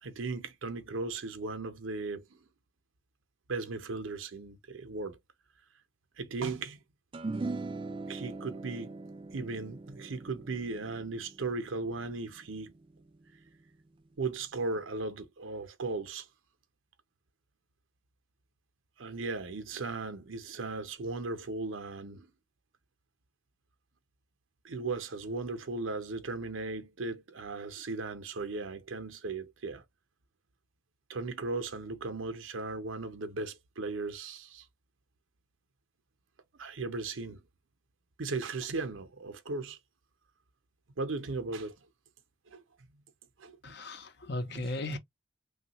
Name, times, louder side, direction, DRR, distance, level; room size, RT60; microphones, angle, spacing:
voice 1, 0.0-2.4 3.5-5.2 6.2-6.8 8.1-8.9 9.3-12.7 14.2-16.3 19.0-22.3 24.6-29.8 31.1-34.6 36.5-37.4 38.2-39.8 41.0-41.8 42.5-42.6 43.4-43.7 44.4-45.0, right 3 dB, 85° right, 0.7 m, -37 dB
sound 1, 7.1-13.7, right 3 dB, 25° right, 0.3 m, -41 dB
voice 2, 43.6-45.0, left 2 dB, 55° left, 0.7 m, -36 dB
3.2 x 2.3 x 2.9 m
head